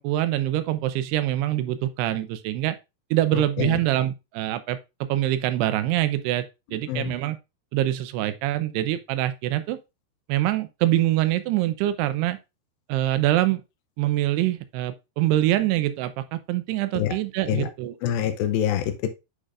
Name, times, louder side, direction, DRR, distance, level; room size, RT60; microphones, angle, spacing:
voice 1, 0.0-2.8 3.1-4.8 5.1-6.5 6.7-7.4 7.7-9.8 10.3-12.4 12.9-13.6 14.0-18.0, right 14 dB, 85° right, 2.7 m, -24 dB
voice 2, 18.0-19.1, left 10 dB, 80° left, 2.2 m, -25 dB
8.7 x 5.0 x 2.4 m
omnidirectional pair, 4.8 m